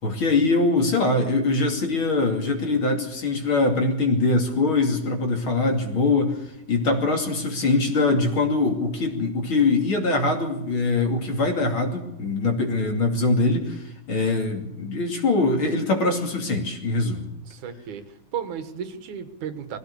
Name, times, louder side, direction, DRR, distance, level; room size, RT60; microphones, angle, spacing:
voice 1, 0.0-6.4 6.7-17.3, left 3 dB, 45° left, 4 dB, 3.4 m, -23 dB
voice 2, 14.2-14.6 17.5-19.8, right 7 dB, 85° right, 10 dB, 3.1 m, -35 dB
21.5 x 16.0 x 8.4 m, 0.88 s
omnidirectional pair, 3.4 m